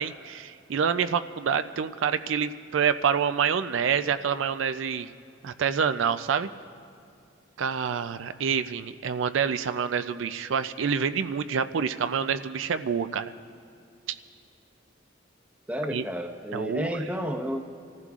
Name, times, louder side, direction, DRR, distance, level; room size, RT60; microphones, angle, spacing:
voice 1, 0.0-5.1 5.4-6.5 7.6-13.3 15.9-16.0 16.5-16.9, right 7 dB, 80° right, 11 dB, 0.4 m, -27 dB
voice 2, 15.7-17.6, equal, 5° right, 3 dB, 0.9 m, -31 dB
29.5 x 15.0 x 2.4 m, 2.4 s
head